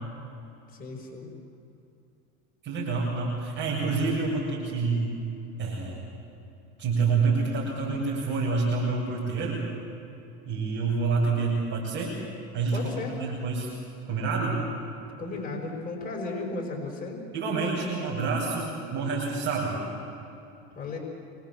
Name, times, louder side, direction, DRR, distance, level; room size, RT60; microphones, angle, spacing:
voice 1, 0.7-1.3 12.7-13.3 15.2-17.2 20.7-21.0, left 3 dB, 25° left, 1 dB, 6.0 m, -35 dB
voice 2, 2.6-5.2 5.6-6.0 6.8-9.7 10.5-12.2 12.5-12.9 13.2-13.7 14.1-14.6 17.3-19.8, right 4 dB, 35° right, -5 dB, 7.8 m, -27 dB
28.0 x 24.5 x 7.5 m, 2.7 s
supercardioid pair, 105°, 33 cm